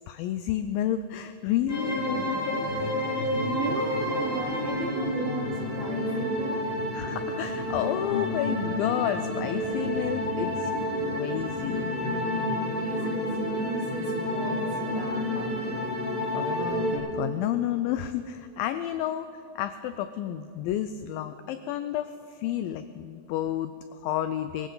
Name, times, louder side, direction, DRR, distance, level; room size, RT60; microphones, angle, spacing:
voice 1, 0.1-2.9 6.9-10.7 11.0-11.9 16.3-24.7, left 11 dB, 90° left, 11 dB, 2.0 m, -31 dB
sound 1, 1.7-17.0, left 1 dB, 25° left, 4.6 m, -29 dB
voice 2, 3.3-6.6 12.7-15.9, right 3 dB, 75° right, 1 dB, 1.5 m, -36 dB
23.5 x 15.5 x 3.9 m, 2.6 s
omnidirectional pair, 4.7 m